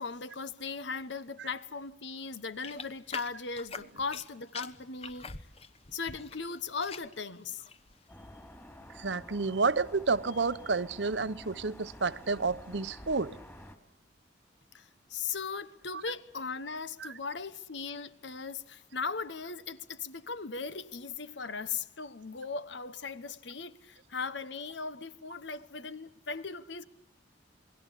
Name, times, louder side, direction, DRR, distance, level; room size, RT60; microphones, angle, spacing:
voice 1, 0.0-5.3 5.9-7.6 14.7-26.8, left 5 dB, 80° left, 1.1 m, -38 dB
sound 1, 2.6-4.3 4.5-6.4 6.7-7.2 7.6-7.9, left 5 dB, 35° left, 1.0 m, -43 dB
sound 2, 8.1-13.8, left 1 dB, 15° left, 2.6 m, -50 dB
voice 2, 8.9-13.4 17.0-17.1, right 4 dB, 75° right, 0.9 m, -30 dB
28.5 x 21.0 x 8.3 m
head